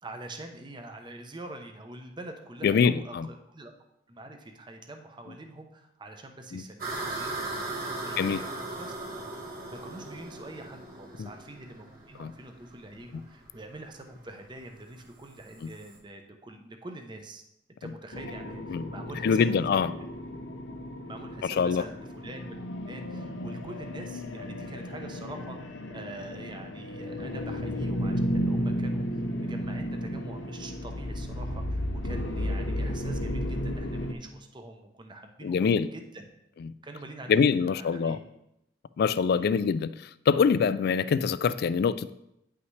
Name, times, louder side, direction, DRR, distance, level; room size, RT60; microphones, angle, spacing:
voice 1, 0.0-3.7 4.1-8.9 9.7-17.4 17.8-19.4 19.7-19.9 21.0-25.6 25.9-36.3 36.8-38.2 39.3-39.6, right 2 dB, 25° right, 5 dB, 0.8 m, -45 dB
voice 2, 2.6-3.3 6.5-6.6 8.2-8.4 11.2-11.3 12.2-12.3 18.7-18.8 19.2-19.9 21.4-21.8 35.4-35.9 36.6-36.7 37.3-38.2 39.0-39.9 40.3-42.1, left 6 dB, 60° left, 16 dB, 0.3 m, -24 dB
sound 1, 6.8-16.0, right 2 dB, 55° right, 1.3 m, -38 dB
sound 2, 18.1-34.1, equal, 75° left, 0.8 m, -33 dB
9.3 x 5.7 x 3.2 m, 0.83 s
head